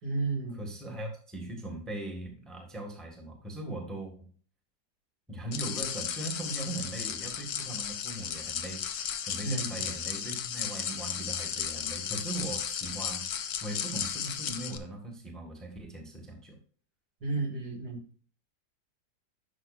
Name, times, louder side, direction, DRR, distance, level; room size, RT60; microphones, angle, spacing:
voice 1, 0.0-0.6 9.4-9.9 17.2-18.0, right 3 dB, 65° right, 0 dB, 2.7 m, -32 dB
voice 2, 0.5-4.1 5.3-16.6, right 2 dB, ahead, 1 dB, 1.6 m, -40 dB
sound 1, 5.5-14.8, left 8 dB, 65° left, 1.2 m, -35 dB
11.5 x 6.1 x 2.4 m, 0.43 s
omnidirectional pair, 1.9 m